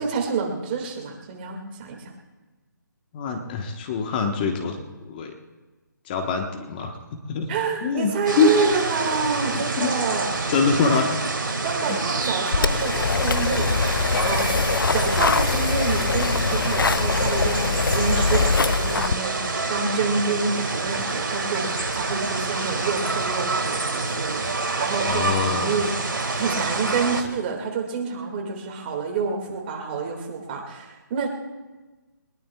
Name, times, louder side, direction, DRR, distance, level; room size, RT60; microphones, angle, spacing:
voice 1, 0.0-2.1 7.5-10.4 10.8-11.0 11.6-13.9 14.2-25.9 26.3-31.3, right 5 dB, 30° right, 2 dB, 2.2 m, -28 dB
voice 2, 3.1-5.3 6.0-7.5 7.8-8.5 9.8-10.0 10.5-11.1 11.9-12.0 25.1-25.8, left 5 dB, 25° left, 4 dB, 1.3 m, -24 dB
sound 1, 8.3-27.2, right 3 dB, 80° right, 1.9 m, -27 dB
sound 2, 12.5-19.1, left 5 dB, 85° left, 0.4 m, -23 dB
22.0 x 20.5 x 2.4 m, 1.2 s
figure-of-eight pair, 155°, 11 cm